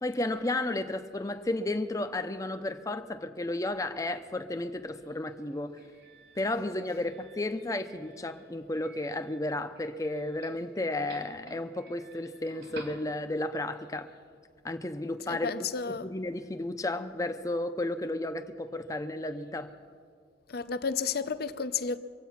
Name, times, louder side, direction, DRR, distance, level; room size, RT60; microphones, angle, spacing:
voice 1, 0.0-5.7 6.4-14.1 14.6-15.5 15.9-19.7, left 2 dB, 20° left, 0.6 m, -33 dB
Doorbell, 4.6-13.6, right 3 dB, 65° right, 2.0 m, -53 dB
voice 2, 15.3-16.1 20.5-22.0, left 5 dB, 55° left, 0.6 m, -32 dB
24.5 x 8.2 x 5.8 m
head